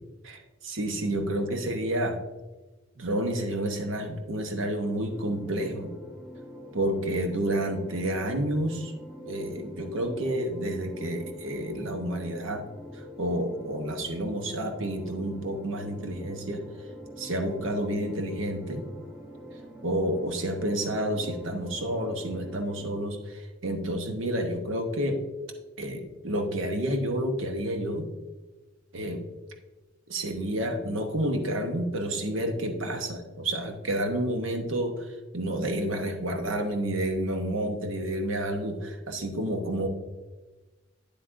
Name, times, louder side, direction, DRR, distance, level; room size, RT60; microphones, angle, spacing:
voice 1, 0.2-2.2 3.0-5.9 6.7-8.9 9.2-12.6 12.9-16.6 17.2-18.9 19.8-25.2 25.8-28.1 28.9-29.2 30.1-35.1 35.3-39.9, right 1 dB, 75° right, 4 dB, 1.0 m, -30 dB
sound 1, 4.8-22.9, equal, 10° right, 1.3 m, -45 dB
8.8 x 8.0 x 2.6 m, 1.2 s
head